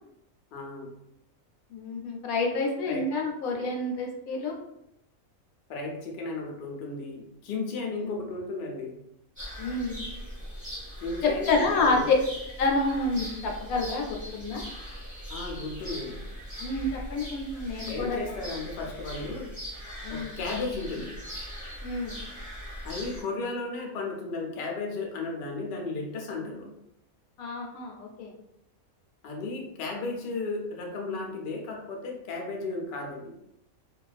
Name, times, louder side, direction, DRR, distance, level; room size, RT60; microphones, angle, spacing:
voice 1, 0.5-0.9 2.9-3.0 3.5-3.6 5.7-9.0 11.0-12.0 15.3-16.2 17.9-19.5 20.1-21.1 22.8-26.7 29.2-33.3, left 3 dB, 65° left, 0 dB, 0.6 m, -34 dB
voice 2, 1.7-4.6 7.8-8.1 9.6-10.0 11.2-12.1 12.6-14.6 16.6-18.2 20.0-20.3 21.8-22.2 27.4-28.3, left 3 dB, 80° left, 0 dB, 1.0 m, -28 dB
sound 1, 9.4-23.2, equal, 5° right, 0.9 m, -40 dB
2.3 x 2.3 x 2.3 m, 0.81 s
omnidirectional pair, 1.5 m